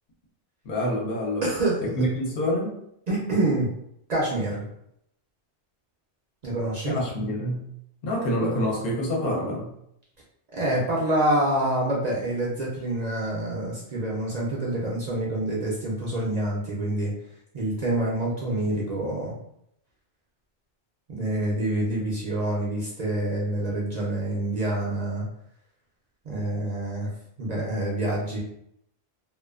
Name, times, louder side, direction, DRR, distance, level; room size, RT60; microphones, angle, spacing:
voice 1, 0.6-1.4 2.0-2.7 6.8-7.7 8.0-9.7, equal, 60° left, -1 dB, 0.8 m, -26 dB
voice 2, 1.4-2.0 3.1-3.7 4.1-4.7 6.4-7.0 10.5-17.1 17.5-19.4 21.1-25.2 26.2-27.1 27.4-28.4, right 1 dB, 50° right, -4 dB, 0.5 m, -27 dB
2.4 x 2.2 x 2.3 m, 0.74 s
omnidirectional pair, 1.2 m